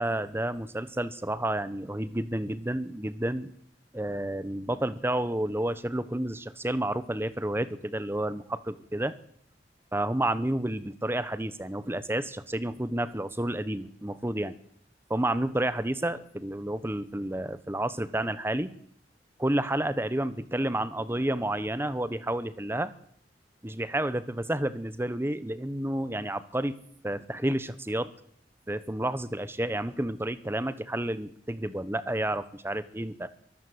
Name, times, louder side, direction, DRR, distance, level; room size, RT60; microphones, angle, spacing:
voice 1, 0.0-3.5 3.9-9.1 9.9-14.5 15.1-18.7 19.4-22.9 23.6-26.8 27.0-28.1 28.7-33.3, right 1 dB, 15° right, 14 dB, 1.1 m, -30 dB
23.0 x 14.5 x 8.1 m, 0.66 s
head